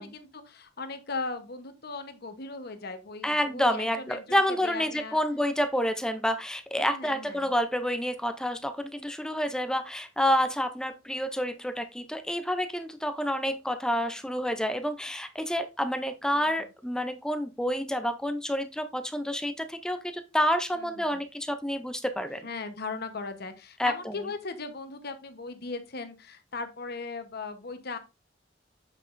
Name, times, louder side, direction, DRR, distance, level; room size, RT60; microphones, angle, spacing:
voice 1, 0.0-5.2 6.8-7.5 16.3-16.6 20.8-21.2 22.4-28.0, left 3 dB, 55° left, 8 dB, 1.0 m, -38 dB
voice 2, 3.2-22.5 23.8-24.1, equal, 5° left, 9 dB, 0.4 m, -29 dB
7.6 x 5.9 x 2.5 m, 0.27 s
head